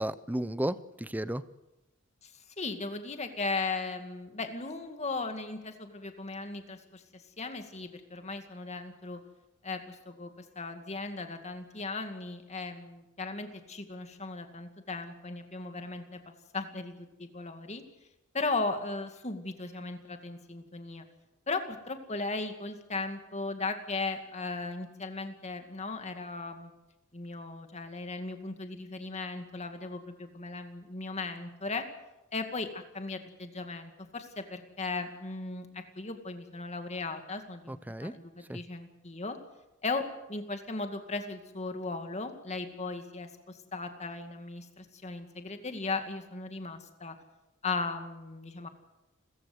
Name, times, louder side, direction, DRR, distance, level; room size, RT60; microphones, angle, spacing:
voice 1, 0.0-1.4 37.7-38.1 38.5-38.6, right 1 dB, 10° right, 15 dB, 0.7 m, -33 dB
voice 2, 2.6-9.2 9.6-16.2 16.5-17.8 18.3-21.0 21.5-26.7 27.1-31.9 32.3-39.4 39.8-47.2 47.6-48.7, left 3 dB, 35° left, 7 dB, 2.3 m, -37 dB
29.5 x 15.0 x 8.0 m, 0.99 s
head